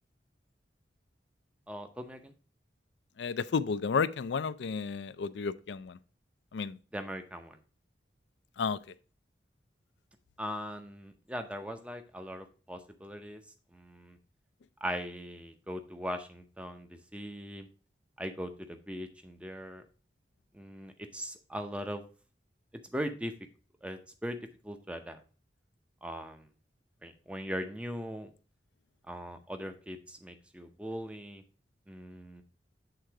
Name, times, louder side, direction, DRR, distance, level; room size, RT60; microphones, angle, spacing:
voice 1, 1.7-2.3 6.9-7.6 10.4-13.4 13.7-14.2 14.8-17.7 18.2-19.8 20.5-22.0 22.9-23.3 23.8-25.2 26.0-26.5 27.0-28.3 29.1-31.4 31.9-32.4, equal, 5° right, 0.6 m, -40 dB
voice 2, 3.2-6.0 6.5-6.8 8.6-8.8, left 5 dB, 75° left, 0.4 m, -32 dB
8.0 x 3.8 x 4.5 m
head